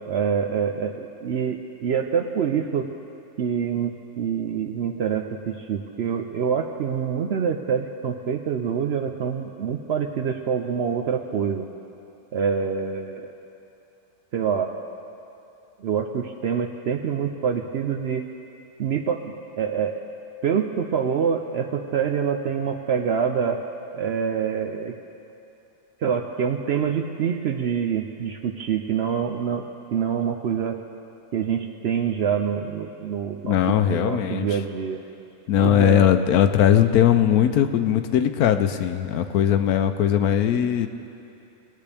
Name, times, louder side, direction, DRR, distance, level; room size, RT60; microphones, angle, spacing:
voice 1, 0.1-2.9 3.4-11.7 12.3-13.3 14.3-14.7 15.8-18.3 18.8-20.0 20.4-23.6 23.9-24.9 26.0-29.6 29.9-30.8 31.3-35.0 35.6-36.1, right 7 dB, 65° right, 4 dB, 0.7 m, -26 dB
voice 2, 33.4-34.6 35.5-40.9, left 10 dB, 85° left, 9 dB, 1.1 m, -19 dB
21.0 x 8.5 x 3.4 m, 2.7 s
omnidirectional pair, 1.5 m